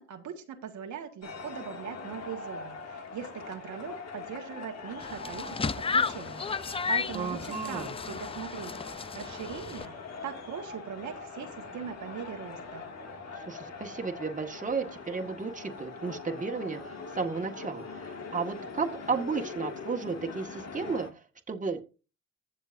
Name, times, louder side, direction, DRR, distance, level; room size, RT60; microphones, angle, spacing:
voice 1, 0.0-9.9 10.2-12.8, right 8 dB, 75° right, 4 dB, 1.7 m, -41 dB
sound 1, 1.2-21.1, left 4 dB, 60° left, 2.2 m, -42 dB
sound 2, 5.0-9.9, left 5 dB, 20° left, 0.4 m, -33 dB
voice 2, 7.1-7.9 13.4-21.8, right 4 dB, 25° right, 3 dB, 1.7 m, -33 dB
15.5 x 6.8 x 2.6 m, 0.33 s
cardioid pair, 90°, 30 cm